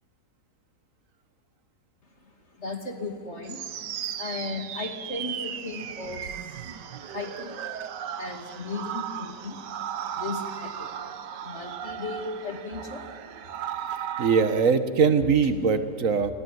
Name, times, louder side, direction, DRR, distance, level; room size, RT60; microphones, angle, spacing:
voice 1, 2.2-14.2, left 3 dB, 40° left, 4 dB, 2.8 m, -37 dB
sound 1, 3.5-14.7, right 9 dB, 85° right, 1.6 m, -36 dB
voice 2, 14.2-16.3, right 5 dB, 50° right, 10 dB, 1.7 m, -21 dB
28.5 x 22.0 x 9.6 m, 2.1 s
omnidirectional pair, 1.8 m